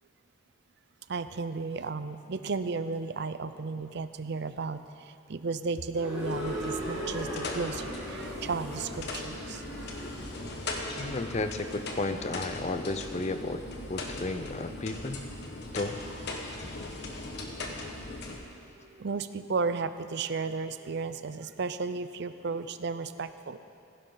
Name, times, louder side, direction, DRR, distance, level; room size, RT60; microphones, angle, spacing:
voice 1, 1.1-9.6 18.6-23.6, right 4 dB, 55° right, 12 dB, 0.5 m, -34 dB
sound 1, 5.9-11.8, equal, 5° right, 4.3 m, -39 dB
sound 2, 6.2-18.4, left 2 dB, 55° left, 1.5 m, -39 dB
voice 2, 11.0-13.6 13.9-15.2 15.7-16.0, left 2 dB, 35° left, 9 dB, 0.6 m, -33 dB
16.0 x 16.0 x 4.0 m, 2.6 s
head